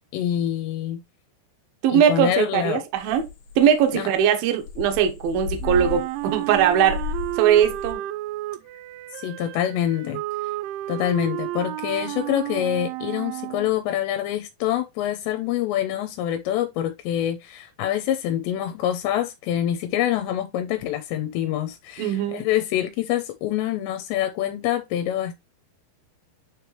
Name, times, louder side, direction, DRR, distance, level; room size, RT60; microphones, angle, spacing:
voice 1, 0.1-1.0 1.9-2.8 3.9-4.1 9.2-10.2 10.9-25.3, left 11 dB, 85° left, 2.8 m, -26 dB
voice 2, 1.8-3.3 3.6-7.0 7.4-8.0 22.0-22.4, right 9 dB, 70° right, 2.4 m, -20 dB
sound 1, 3.0-7.9, left 6 dB, 60° left, 2.9 m, -34 dB
Wind instrument woodwind instrument, 5.6-13.7, right 16 dB, 90° right, 2.9 m, -32 dB
9.4 x 3.4 x 3.2 m
omnidirectional pair, 5.2 m